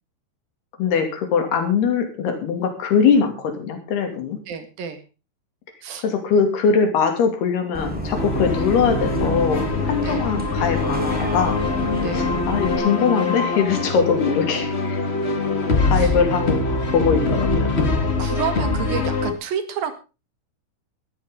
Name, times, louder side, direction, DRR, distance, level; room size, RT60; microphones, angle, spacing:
voice 1, 0.8-4.4 6.0-11.6 12.1-15.0 15.8-17.8, left 6 dB, 80° left, 5 dB, 4.6 m, -21 dB
voice 2, 4.5-5.0 5.8-6.1 10.0-10.3 12.0-12.3 15.4-16.2 18.2-19.9, right 8 dB, 70° right, 9 dB, 3.5 m, -30 dB
Bus, 7.7-12.8, equal, ahead, 3.4 m, -29 dB
sound 1, 8.1-19.3, left 3 dB, 60° left, 0.6 m, -23 dB
18.0 x 13.5 x 3.8 m, 0.32 s
omnidirectional pair, 4.5 m